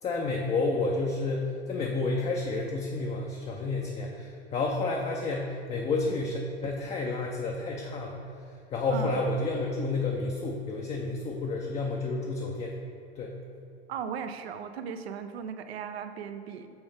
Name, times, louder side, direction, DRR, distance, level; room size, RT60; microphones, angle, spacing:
voice 1, 0.0-12.7 13.2-13.4, left 3 dB, 20° left, 0 dB, 0.5 m, -30 dB
voice 2, 13.9-16.7, right 7 dB, 65° right, 8 dB, 0.6 m, -37 dB
6.8 x 5.6 x 3.4 m, 2.5 s
figure-of-eight pair, 90°, 34 cm